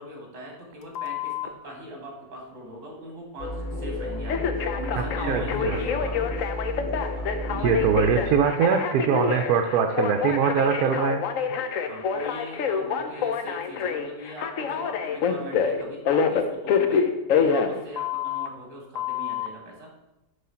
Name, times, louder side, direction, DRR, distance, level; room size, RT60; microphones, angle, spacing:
voice 1, 0.0-6.3 7.1-7.3 11.8-17.0 17.3-19.9, equal, 50° right, 0 dB, 2.2 m, -40 dB
Telephone, 0.9-1.5 4.3-18.5 18.9-19.5, left 6 dB, 65° left, 0.9 m, -27 dB
sound 1, 3.4-8.4, left 1 dB, 40° left, 0.8 m, -32 dB
voice 2, 5.2-5.8 7.6-11.2, right 7 dB, 70° right, 5 dB, 1.1 m, -22 dB
7.6 x 3.8 x 5.6 m, 0.95 s
omnidirectional pair, 1.7 m